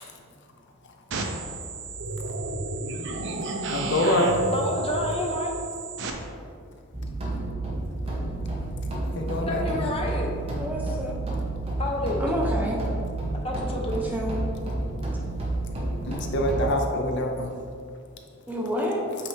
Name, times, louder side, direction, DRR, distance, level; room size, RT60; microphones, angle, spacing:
sound 1, 1.1-6.1, right 2 dB, 55° right, 0.6 m, -32 dB
voice 1, 3.7-4.4 9.1-9.8 16.0-17.5, left 1 dB, 55° left, 2 dB, 0.6 m, -25 dB
voice 2, 4.5-5.6 9.5-10.4 11.8-12.2 13.3-14.1, left 1 dB, 25° left, 0 dB, 0.8 m, -29 dB
sound 2, 6.9-16.7, right 2 dB, 25° right, 1.0 m, -30 dB
voice 3, 10.6-11.2 12.2-12.9 14.1-14.4 18.5-19.0, equal, 5° right, -2 dB, 0.5 m, -28 dB
8.3 x 4.1 x 3.3 m, 2.3 s
head